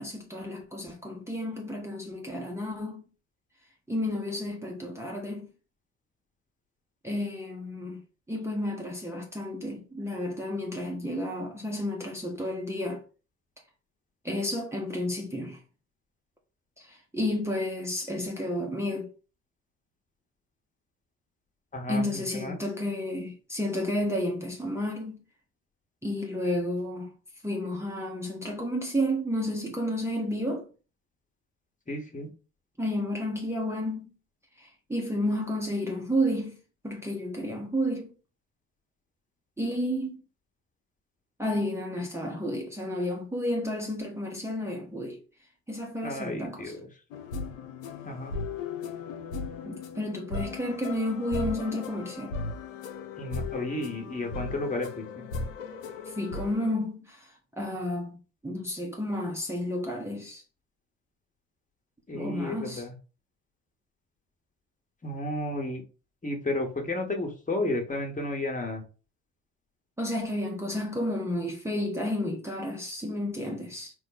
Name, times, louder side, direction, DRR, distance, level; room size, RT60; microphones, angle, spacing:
voice 1, 0.0-3.1 3.9-5.5 7.0-8.0 8.3-13.0 14.2-15.6 16.8-19.1 21.9-25.2 26.0-27.1 27.4-30.7 32.8-34.1 34.6-36.6 36.8-38.1 39.6-40.2 41.4-45.2 45.7-46.7 49.6-52.3 56.1-57.3 57.6-60.4 62.1-62.8 70.0-73.9, left 1 dB, 5° right, 1.0 m, -31 dB
voice 2, 21.7-22.6 31.9-32.3 46.0-46.9 48.0-48.3 53.2-55.3 62.1-62.9 65.0-65.8 66.2-68.8, left 2 dB, 20° left, 1.5 m, -32 dB
sound 1, 47.1-56.7, left 4 dB, 85° left, 0.5 m, -37 dB
4.4 x 2.2 x 4.0 m
hypercardioid pair, 50°, 39 cm